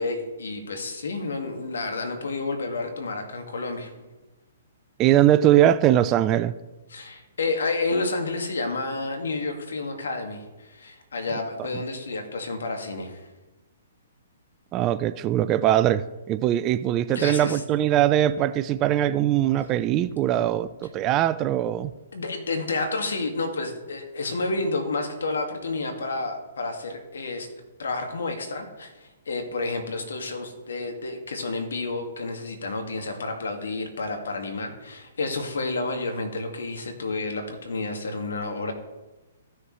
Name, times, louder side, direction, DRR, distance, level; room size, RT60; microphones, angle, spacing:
voice 1, 0.0-3.9 6.9-13.3 17.1-17.6 22.1-27.5 27.8-38.7, left 3 dB, 75° left, 4 dB, 1.8 m, -30 dB
voice 2, 5.0-6.5 14.7-21.9, right 12 dB, 30° right, 14 dB, 0.4 m, -21 dB
15.0 x 6.4 x 3.1 m, 1.1 s
hypercardioid pair, 125°, 0 cm